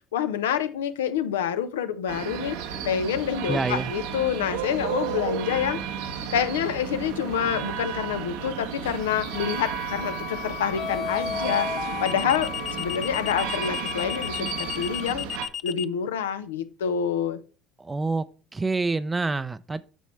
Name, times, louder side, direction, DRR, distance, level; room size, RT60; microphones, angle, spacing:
voice 1, 0.1-2.6 2.8-5.8 6.3-12.5 12.8-15.3 15.6-17.4, left 8 dB, 85° left, 0.6 m, -27 dB
sound 1, 2.1-15.5, right 8 dB, 75° right, 0.9 m, -33 dB
voice 2, 3.5-3.9 17.8-18.2 18.5-19.8, right 3 dB, 20° right, 0.5 m, -27 dB
sound 2, 7.5-7.8 10.8-15.9, left 7 dB, 45° left, 0.4 m, -32 dB
sound 3, 8.6-15.1, left 9 dB, 65° left, 1.3 m, -38 dB
9.1 x 6.2 x 3.2 m
hypercardioid pair, 65°, 0 cm